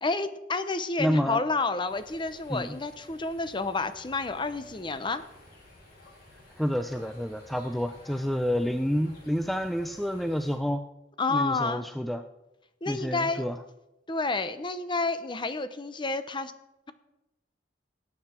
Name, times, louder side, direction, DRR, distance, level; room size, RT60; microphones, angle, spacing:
voice 1, 0.0-5.2 11.2-11.8 12.8-13.4 14.1-16.5, left 3 dB, 25° left, 11 dB, 0.8 m, -30 dB
voice 2, 1.0-1.4 2.5-2.7 6.6-10.8 11.3-12.2 12.9-13.6, equal, ahead, 7 dB, 0.4 m, -29 dB
sound 1, 1.9-10.6, left 1 dB, 55° left, 5.4 m, -53 dB
17.5 x 8.5 x 4.4 m, 0.96 s
head